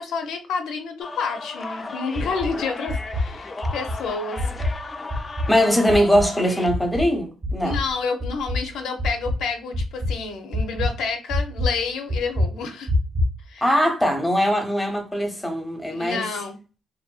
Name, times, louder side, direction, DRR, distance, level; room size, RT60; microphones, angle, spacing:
voice 1, 0.0-4.4 7.6-12.9 13.5-13.6 15.9-16.6, left 5 dB, 85° left, 0.5 m, -29 dB
sound 1, 1.0-6.7, left 3 dB, 30° left, 0.3 m, -35 dB
sound 2, 2.2-2.5 2.9-3.3 3.6-4.0 4.4-4.8 5.1-5.6 5.9-6.3 6.7-7.1 7.4-7.9 8.2-8.6 9.0-9.4 9.7-10.2 10.5-10.9 11.3-11.7 12.1-12.5 12.9-13.3, left 1 dB, 50° right, 0.8 m, -24 dB
voice 2, 5.5-7.8 13.6-16.3, equal, 5° left, 0.7 m, -21 dB
2.5 x 2.2 x 2.3 m
cardioid pair, 90°, 0 cm